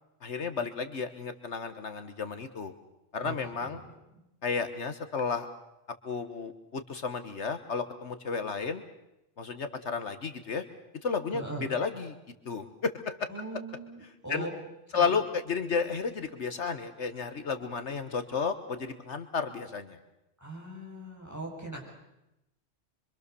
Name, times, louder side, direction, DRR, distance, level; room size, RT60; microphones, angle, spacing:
voice 1, 0.2-2.7 3.1-3.8 4.4-5.5 6.0-8.8 9.4-10.6 11.0-12.1 12.4-13.3 14.3-14.5 14.9-20.0, left 5 dB, 65° left, 9 dB, 1.6 m, -32 dB
voice 2, 3.2-3.9 4.1-4.3 11.3-11.7 13.3-14.5 14.9-15.2 20.4-21.9, right 2 dB, 15° right, -1 dB, 7.3 m, -40 dB
25.5 x 25.0 x 6.9 m, 0.91 s
omnidirectional pair, 1.3 m